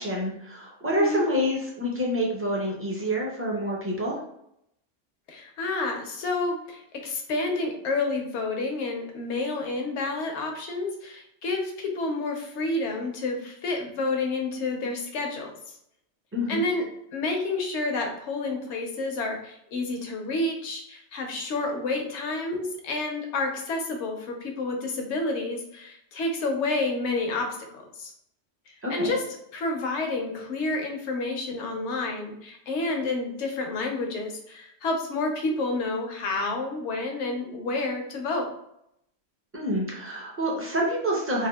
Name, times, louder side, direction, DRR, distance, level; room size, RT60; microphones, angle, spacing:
voice 1, 0.0-4.2 16.3-16.6 28.8-29.1 39.5-41.5, equal, 20° right, -3 dB, 0.4 m, -27 dB
voice 2, 5.3-15.5 16.5-16.9 17.1-28.1 28.9-29.2 29.5-38.5, left 2 dB, 70° left, 3 dB, 0.9 m, -29 dB
3.4 x 2.3 x 2.2 m, 0.75 s
omnidirectional pair, 1.2 m